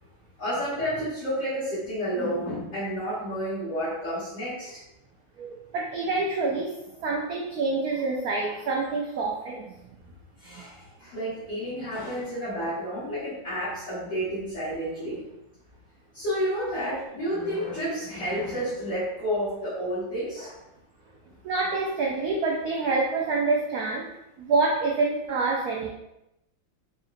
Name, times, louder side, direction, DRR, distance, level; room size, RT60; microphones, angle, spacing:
voice 1, 0.4-4.8 10.4-15.2 16.1-20.6, equal, 40° left, -14 dB, 1.9 m, -30 dB
voice 2, 5.4-9.7 10.5-10.7 21.4-25.9, right 3 dB, 85° right, -1 dB, 0.8 m, -27 dB
4.6 x 2.7 x 2.5 m, 0.86 s
omnidirectional pair, 2.2 m